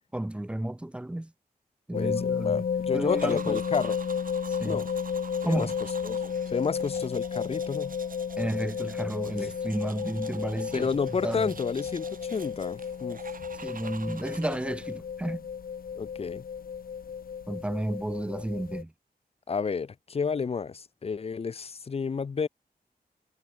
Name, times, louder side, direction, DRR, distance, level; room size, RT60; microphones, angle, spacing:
voice 1, 0.1-1.3 1.9-2.7 2.9-3.6 4.5-4.8 5.4-5.8 8.4-11.5 13.6-15.5 17.5-18.9, right 1 dB, 5° right, 0.5 m, -32 dB
sound 1, 1.9-18.8, left 7 dB, 65° left, 0.9 m, -33 dB
voice 2, 1.9-4.0 4.6-4.9 5.4-5.7 6.0-8.0 10.7-13.2 16.0-16.4 19.5-22.5, left 5 dB, 40° left, 0.5 m, -31 dB
sound 2, 3.0-15.0, right 5 dB, 60° right, 6.7 m, -47 dB
wide cardioid pair, 125°, 16 cm